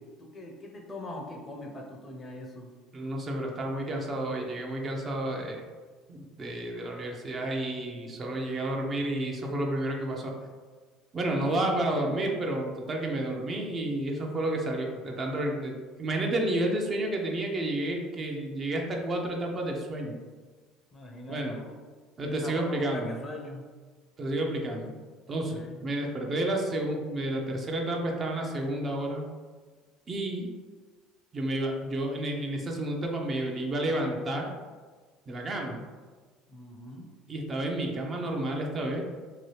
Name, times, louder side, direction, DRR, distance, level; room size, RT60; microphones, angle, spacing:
voice 1, 0.2-2.7 11.2-11.7 20.9-21.8 22.2-23.6 25.4-25.8 36.5-37.1, left 1 dB, 30° left, 1 dB, 0.6 m, -42 dB
voice 2, 2.9-5.6 6.1-10.3 11.1-20.2 21.3-21.6 22.2-23.1 24.2-24.9 25.3-29.3 30.1-30.5 31.3-34.5 35.3-35.8 37.3-39.0, right 1 dB, 35° right, 1 dB, 0.5 m, -31 dB
2.8 x 2.3 x 3.1 m, 1.4 s
supercardioid pair, 85°, 0 cm